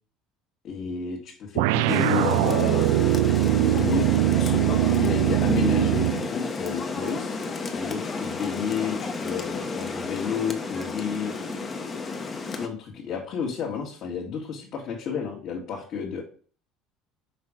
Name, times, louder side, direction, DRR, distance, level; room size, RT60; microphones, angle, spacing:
voice 1, 0.6-2.9 3.7-4.1 4.4-7.4 7.7-11.4 12.6-16.2, left 6 dB, 50° left, -2 dB, 1.7 m, -31 dB
sound 1, 1.6-6.3, right 17 dB, 90° right, 0.3 m, -22 dB
Rain, 1.9-12.7, left 4 dB, 25° left, 1.0 m, -31 dB
5.8 x 4.2 x 4.9 m, 0.42 s
cardioid pair, 130°, 0 cm